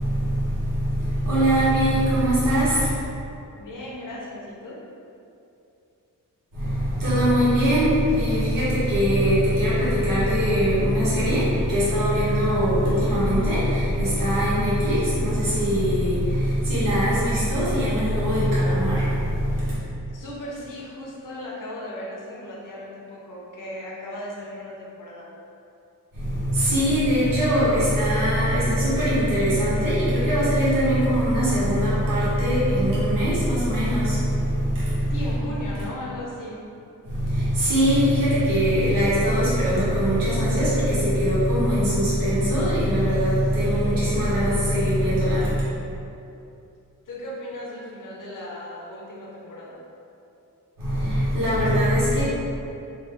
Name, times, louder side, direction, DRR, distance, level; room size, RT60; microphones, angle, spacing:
voice 1, 0.0-2.9 6.5-19.8 26.1-35.1 37.0-45.6 50.8-52.2, equal, 75° right, -10 dB, 1.0 m, -21 dB
voice 2, 3.6-4.8 20.1-25.3 32.2-32.3 35.1-36.6 43.6-44.0 47.1-49.8, left 1 dB, 65° left, -4 dB, 0.8 m, -37 dB
2.7 x 2.2 x 3.4 m, 2.7 s
cardioid pair, 75°, 34 cm